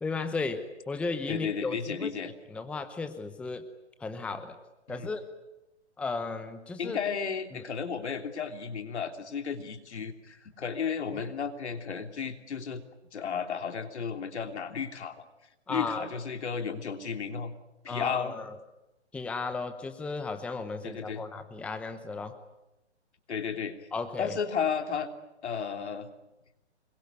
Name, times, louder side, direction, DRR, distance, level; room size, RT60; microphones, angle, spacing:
voice 1, 0.0-2.1 2.5-3.7 4.0-4.6 4.9-5.3 6.0-7.0 7.5-7.6 11.1-11.2 15.7-16.1 17.9-18.6 19.1-22.4 23.9-24.4, left 4 dB, 5° left, 9 dB, 0.9 m, -35 dB
voice 2, 1.3-2.3 4.9-5.1 6.8-12.8 13.1-15.2 15.7-17.5 17.8-18.4 20.8-21.2 23.3-23.8 24.2-25.1 25.4-26.1, left 6 dB, 70° left, 6 dB, 3.3 m, -33 dB
26.0 x 22.5 x 9.5 m, 0.93 s
hypercardioid pair, 145°, 34 cm